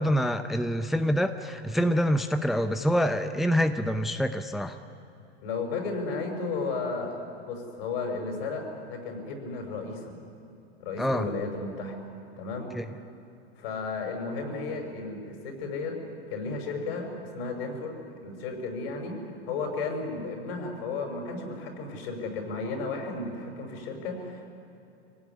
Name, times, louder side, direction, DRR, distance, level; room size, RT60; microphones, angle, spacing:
voice 1, 0.0-4.7 11.0-11.3 12.7-12.8, equal, ahead, 8 dB, 0.7 m, -26 dB
voice 2, 5.4-10.1 10.8-12.0 12.4-12.7 13.6-16.0 16.3-19.2 19.5-24.4, left 3 dB, 65° left, 3 dB, 6.2 m, -34 dB
24.5 x 17.5 x 9.9 m, 2.8 s
hypercardioid pair, 110°, 32 cm